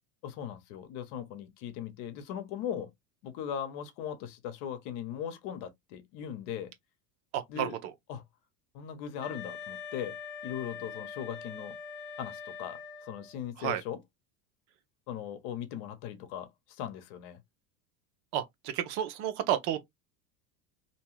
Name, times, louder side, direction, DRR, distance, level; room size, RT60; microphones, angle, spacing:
voice 1, 0.2-2.9 3.2-6.7 7.5-7.8 8.1-8.2 8.7-10.2 10.4-11.8 12.2-14.0 15.1-17.4, left 9 dB, 65° left, 0.9 m, -39 dB
voice 2, 7.3-7.7 13.6-13.8 18.3-19.8, right 10 dB, 60° right, 0.8 m, -31 dB
Wind instrument woodwind instrument, 9.2-13.4, left 6 dB, 30° left, 0.6 m, -43 dB
2.8 x 2.2 x 3.0 m
supercardioid pair, 120°, 43 cm